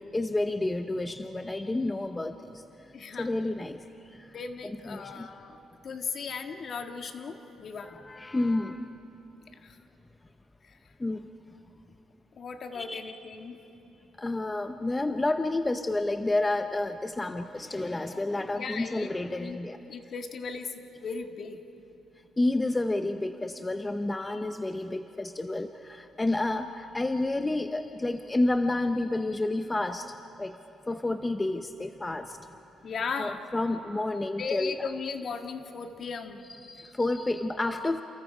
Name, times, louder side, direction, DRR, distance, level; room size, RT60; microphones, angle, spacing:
voice 1, 0.0-2.6 3.2-5.3 7.8-8.9 11.0-11.3 12.7-13.1 14.2-19.8 22.4-30.6 30.9-32.4 33.2-34.9 36.5-38.0, left 2 dB, 20° left, 8 dB, 0.8 m, -30 dB
voice 2, 2.9-3.3 4.1-5.6 5.8-8.0 9.6-9.8 12.4-13.6 18.6-19.1 19.4-19.6 19.9-20.7 21.0-21.6 32.8-33.4 34.4-36.4, left 5 dB, 55° left, 5 dB, 1.7 m, -36 dB
29.0 x 28.5 x 5.0 m, 2.9 s
cardioid pair, 90°, 0 cm